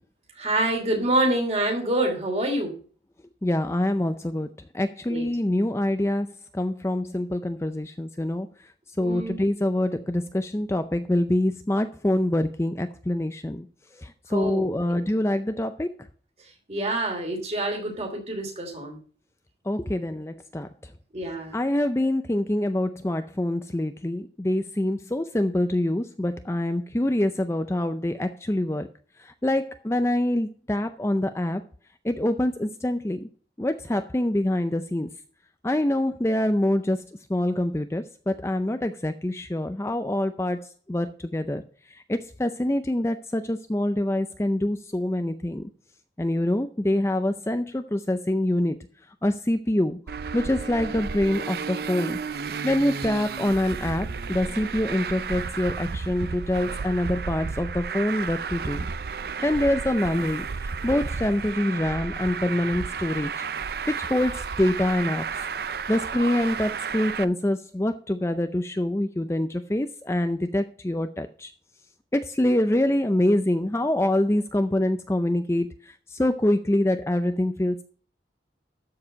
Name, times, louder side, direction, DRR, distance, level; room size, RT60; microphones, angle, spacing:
voice 1, 0.4-2.8 5.1-5.3 9.0-9.4 14.3-15.0 16.7-19.0 21.1-21.5, right 1 dB, 35° right, 2 dB, 2.9 m, -26 dB
voice 2, 3.4-4.5 4.7-6.3 6.5-8.5 9.0-13.7 14.0-15.9 19.7-20.7 21.5-28.9 29.4-31.6 32.0-33.3 33.6-35.1 35.6-37.0 37.3-40.6 40.9-41.6 42.1-45.6 46.2-48.8 49.2-50.0 50.3-52.2 52.6-58.9 59.4-60.5 60.8-63.3 63.9-65.2 65.9-71.5 72.1-75.7 76.1-77.8, left 1 dB, 15° left, 9 dB, 0.4 m, -25 dB
Traffic noise roadway noise, 50.1-67.2, right 5 dB, 55° right, 0.4 m, -32 dB
13.0 x 4.8 x 6.4 m, 0.42 s
head